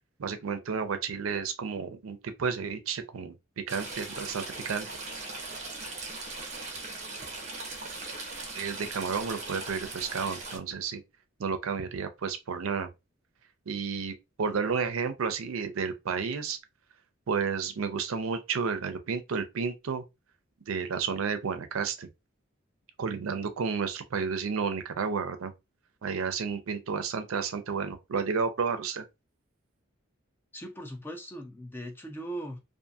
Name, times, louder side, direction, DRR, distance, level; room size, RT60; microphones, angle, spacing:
voice 1, 0.2-4.9 8.5-11.0 11.4-12.9 13.7-16.6 17.3-20.0 20.7-22.1 23.0-25.5 26.0-29.0, right 5 dB, 85° right, 0.5 m, -31 dB
Stream / Trickle dribble, 3.7-10.6, right 3 dB, 35° right, 0.6 m, -39 dB
voice 2, 30.5-32.6, right 1 dB, 10° left, 0.4 m, -39 dB
2.6 x 2.5 x 2.3 m
head